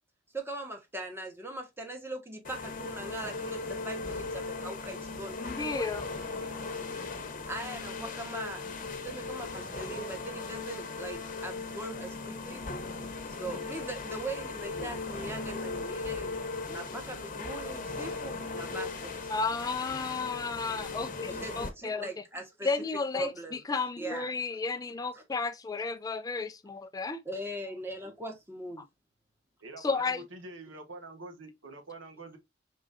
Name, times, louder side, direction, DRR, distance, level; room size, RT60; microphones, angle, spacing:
voice 1, 0.3-5.9 7.5-8.6 9.0-12.6 13.4-16.4 16.7-19.3 21.3-22.7 23.1-23.6 24.0-24.3 25.1-25.2 27.2-28.8, right 1 dB, 15° right, 1.1 m, -40 dB
sound 1, 2.4-21.7, left 3 dB, 45° left, 0.9 m, -38 dB
voice 2, 5.4-6.0 19.3-22.1 22.6-27.2 29.8-30.2, left 4 dB, 20° left, 0.3 m, -33 dB
voice 3, 29.6-32.4, right 2 dB, 85° right, 1.2 m, -46 dB
5.0 x 3.7 x 2.5 m
head